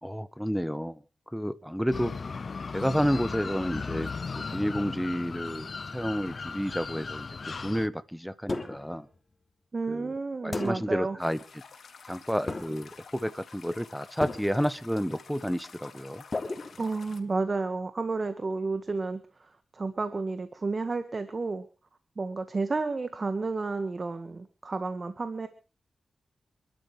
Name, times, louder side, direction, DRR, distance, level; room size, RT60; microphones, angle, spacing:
voice 1, 0.0-1.0 1.3-2.2 2.7-4.1 4.4-9.1 9.9-10.1 10.4-11.4 12.1-16.2, equal, ahead, 13 dB, 1.3 m, -30 dB
sound 1, 1.9-7.9, left 4 dB, 55° left, 0.7 m, -36 dB
sound 2, 8.5-9.0 10.5-11.1 12.5-13.0 14.2-14.8 16.3-17.3, left 3 dB, 35° left, 3.1 m, -36 dB
voice 2, 9.7-11.2 16.8-21.7 22.2-25.5, right 3 dB, 45° right, 9 dB, 1.8 m, -31 dB
sound 3, 11.2-17.2, left 5 dB, 75° left, 3.4 m, -50 dB
28.0 x 12.5 x 3.4 m, 0.35 s
cardioid pair, 80°, 0 cm